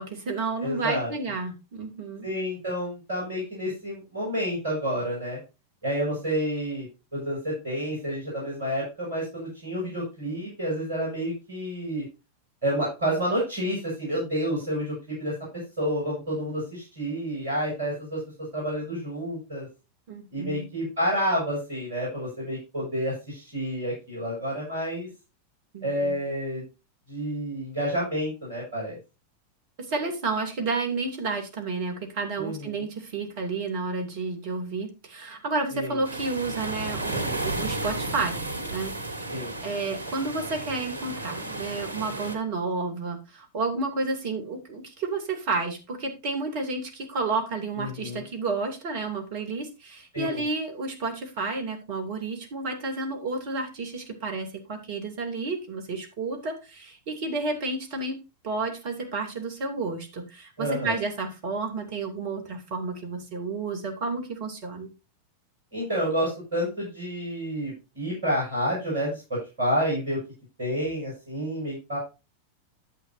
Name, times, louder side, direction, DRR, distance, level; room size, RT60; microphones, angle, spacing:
voice 1, 0.0-2.3 20.1-20.7 25.7-26.2 29.8-38.4 38.7-39.0 39.6-58.2 58.4-64.9, right 3 dB, 50° right, 5 dB, 2.8 m, -31 dB
voice 2, 0.6-1.1 2.2-5.4 5.8-6.9 7.1-12.0 12.6-18.2 18.5-19.7 20.3-25.1 25.8-26.6 27.1-29.0 32.4-32.8 35.7-36.0 39.3-39.5 47.7-48.2 50.1-50.4 60.6-60.9 65.7-70.2 70.6-72.0, equal, 65° right, -5 dB, 6.7 m, -29 dB
sound 1, 36.0-42.4, right 2 dB, 80° left, 1.9 m, -33 dB
11.0 x 8.1 x 2.7 m, 0.28 s
figure-of-eight pair, 90°, 0 cm